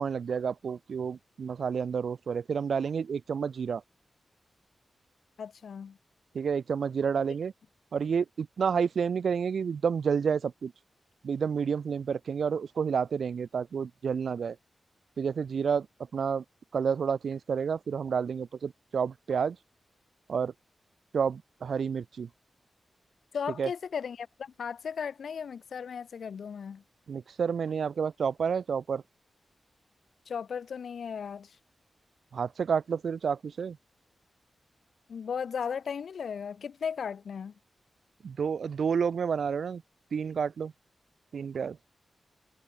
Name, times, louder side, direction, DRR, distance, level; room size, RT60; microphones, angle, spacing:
voice 1, 0.0-3.8 6.3-7.5 7.9-10.7 11.2-14.5 15.2-15.9 16.1-16.4 16.7-19.6 20.3-20.5 21.1-22.3 23.6-23.7 27.1-29.0 32.3-33.8 38.2-39.8 40.1-40.7 41.3-41.8, right 6 dB, 80° right, 1.5 m, -30 dB
voice 2, 5.4-6.0 23.3-26.8 30.3-31.6 35.1-37.5, left 6 dB, 85° left, 3.1 m, -36 dB
wide cardioid pair, 85°, 0 cm